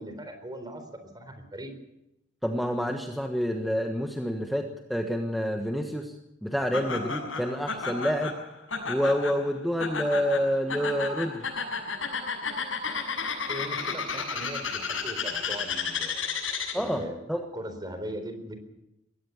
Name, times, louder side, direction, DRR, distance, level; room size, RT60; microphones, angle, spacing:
voice 1, 0.0-1.7 13.5-16.3 16.8-18.6, equal, 20° right, 8 dB, 4.1 m, -39 dB
voice 2, 2.4-6.1 6.4-8.4 8.9-11.5 16.7-17.0 17.3-17.4, equal, ahead, 3 dB, 1.4 m, -28 dB
Laughter, 6.7-17.0, left 5 dB, 85° left, 7.8 m, -32 dB
21.5 x 18.0 x 7.2 m, 0.86 s
head